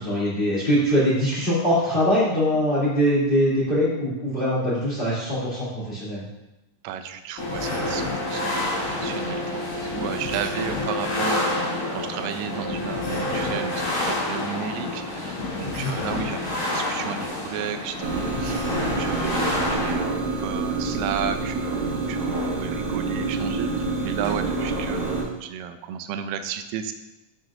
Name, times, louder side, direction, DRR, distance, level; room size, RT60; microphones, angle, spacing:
voice 1, 0.0-6.2 15.8-16.0, equal, 15° left, -8 dB, 2.6 m, -22 dB
voice 2, 6.8-20.1 20.4-26.9, right 8 dB, 85° right, 8 dB, 2.2 m, -33 dB
sound 1, 7.4-19.9, left 2 dB, 65° left, 3.9 m, -28 dB
sound 2, 9.4-17.3, left 3 dB, 85° left, 2.8 m, -41 dB
sound 3, 18.0-25.2, right 3 dB, 40° right, 2.5 m, -27 dB
12.0 x 6.3 x 2.5 m, 0.97 s
omnidirectional pair, 3.9 m